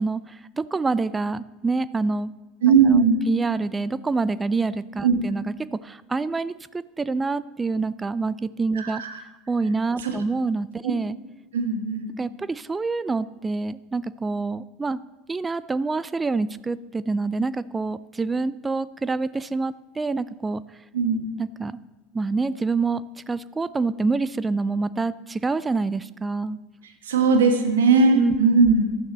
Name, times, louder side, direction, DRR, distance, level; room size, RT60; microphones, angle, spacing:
voice 1, 0.0-2.3 2.9-3.0 3.3-9.0 9.5-11.2 12.2-15.0 15.3-20.6 21.4-21.8 22.1-26.6 27.9-28.4, right 3 dB, 15° right, 17 dB, 0.4 m, -26 dB
voice 2, 2.6-3.2 5.0-5.1 8.7-9.1 10.0-10.1 11.5-12.0 20.9-21.2 27.0-28.8, right 4 dB, 65° right, 4 dB, 1.7 m, -18 dB
15.0 x 12.0 x 3.2 m, 1.1 s
figure-of-eight pair, 75°, 0 cm